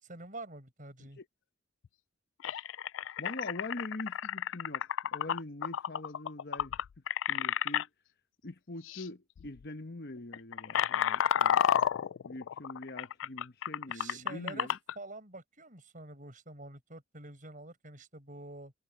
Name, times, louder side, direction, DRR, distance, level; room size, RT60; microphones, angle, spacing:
voice 1, 0.0-1.2 13.9-14.7 15.0-18.7, right 2 dB, 45° right, 5.9 m, -47 dB
sound 1, 1.8-1.9 2.4-7.8 8.8-9.1 9.4-9.6 10.2-14.9, left 9 dB, 80° left, 0.3 m, -31 dB
voice 2, 3.2-6.8 7.3-7.9 8.4-11.7 12.2-14.8, left 2 dB, 55° left, 1.1 m, -43 dB
head